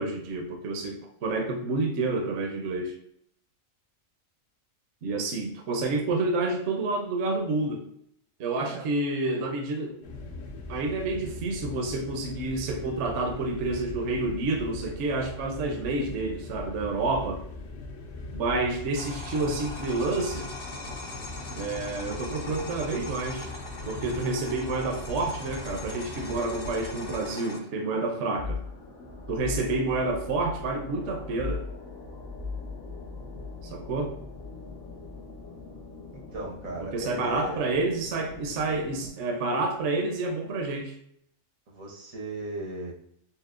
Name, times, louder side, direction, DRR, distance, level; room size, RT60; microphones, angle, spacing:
voice 1, 0.0-2.9 5.0-7.8 8.4-10.0 10.7-17.4 18.3-20.5 21.5-23.5 23.9-28.6 29.3-31.6 33.6-34.1 36.8-40.9, right 3 dB, 65° right, 3 dB, 0.9 m, -29 dB
voice 2, 8.6-8.9 36.1-37.6 41.7-42.9, right 2 dB, 85° right, -1 dB, 1.4 m, -37 dB
sound 1, 10.0-27.3, left 2 dB, 75° left, 1.0 m, -40 dB
sound 2, 18.9-27.6, left 2 dB, 55° left, 0.7 m, -41 dB
sound 3, 24.8-39.1, left 4 dB, 90° left, 1.3 m, -41 dB
5.5 x 2.0 x 2.4 m, 0.68 s
omnidirectional pair, 1.4 m